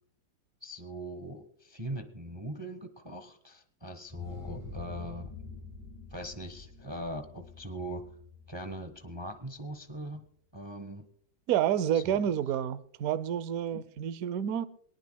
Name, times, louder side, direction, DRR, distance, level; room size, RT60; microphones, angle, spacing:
voice 1, 0.6-5.3 6.1-8.0 8.5-10.2 10.5-11.1 11.9-12.2 13.7-13.8, right 1 dB, 35° right, 0.4 m, -41 dB
sound 1, 4.1-9.6, left 4 dB, 5° left, 7.5 m, -46 dB
voice 2, 11.5-14.6, right 10 dB, 75° right, 0.8 m, -29 dB
22.5 x 18.5 x 2.3 m
omnidirectional pair, 2.3 m